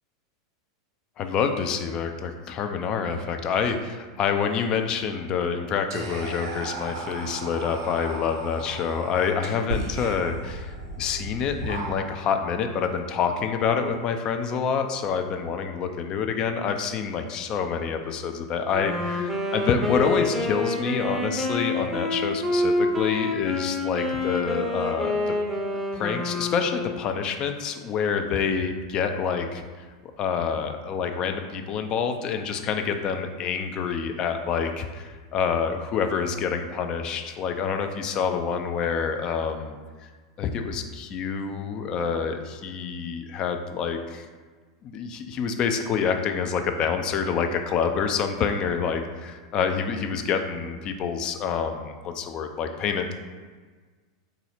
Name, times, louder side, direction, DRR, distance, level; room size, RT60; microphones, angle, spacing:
voice 1, 1.2-25.4 25.7-29.6 30.2-39.8 40.0-40.1 40.4-44.3 44.8-53.1, left 6 dB, 35° left, 6 dB, 0.4 m, -27 dB
Whispering, 5.9-12.4, right 2 dB, 65° right, 0.7 m, -35 dB
Wind instrument woodwind instrument, 18.7-27.0, left 2 dB, 5° right, 0.7 m, -27 dB
3.8 x 2.7 x 4.3 m, 1.5 s
figure-of-eight pair, 90°, 2 cm